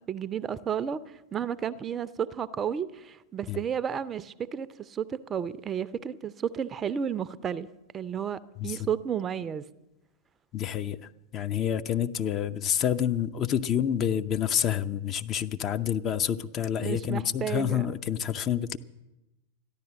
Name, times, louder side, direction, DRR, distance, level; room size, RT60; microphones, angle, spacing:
voice 1, 0.1-7.7 7.9-9.7 16.8-18.0, right 8 dB, 25° right, 17 dB, 0.5 m, -32 dB
voice 2, 10.5-11.0 11.3-18.8, left 9 dB, 30° left, 9 dB, 0.6 m, -28 dB
13.5 x 11.0 x 7.9 m, 0.98 s
figure-of-eight pair, 90°, 0 cm